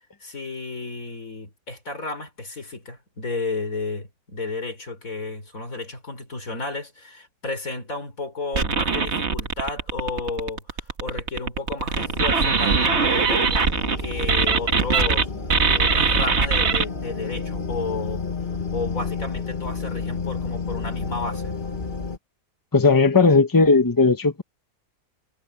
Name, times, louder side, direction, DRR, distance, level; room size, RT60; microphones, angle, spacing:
voice 1, 0.2-13.6 14.0-15.3 15.7-18.2 18.7-21.5, left 3 dB, 60° left, 5.0 m, -32 dB
sound 1, 8.5-15.2 15.5-16.8, right 5 dB, 45° right, 1.8 m, -21 dB
sound 2, 11.9-22.2, left 4 dB, 35° left, 1.7 m, -31 dB
voice 2, 22.7-24.4, left 4 dB, 15° left, 1.2 m, -17 dB
omnidirectional pair, 1.6 m